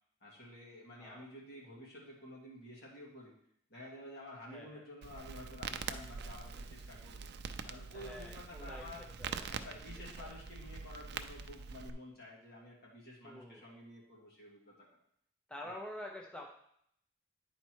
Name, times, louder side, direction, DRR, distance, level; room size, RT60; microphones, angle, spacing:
voice 1, 0.2-3.3 3.7-7.3 7.6-9.1 9.5-14.9, left 1 dB, 55° left, -4 dB, 2.4 m, -51 dB
voice 2, 4.5-4.8 7.9-10.3 13.2-13.6 15.5-16.5, left 1 dB, 5° left, -1 dB, 0.6 m, -48 dB
Crackle, 5.0-11.9, right 5 dB, 60° right, 0.4 m, -44 dB
9.5 x 4.3 x 4.6 m, 0.71 s
head